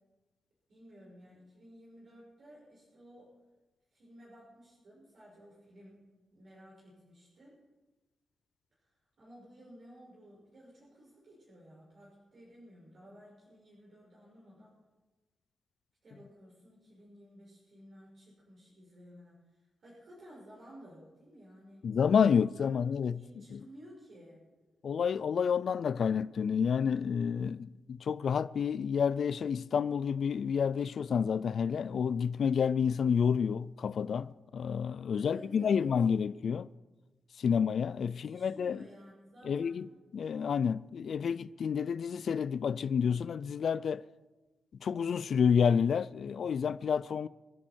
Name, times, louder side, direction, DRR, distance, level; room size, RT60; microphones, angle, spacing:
voice 1, 0.7-3.3 3.9-7.6 8.8-8.9 9.2-14.7 16.0-21.9 22.5-22.7 23.1-24.4 35.1-35.9 38.0-39.8, equal, 55° right, 5.8 m, -55 dB
voice 2, 21.8-23.2 23.5-23.6 24.8-36.7 37.4-38.8 39.5-39.9 40.1-44.0 44.8-47.3, left 7 dB, 60° left, 0.4 m, -29 dB
26.5 x 11.0 x 4.5 m
wide cardioid pair, 130°, 0 cm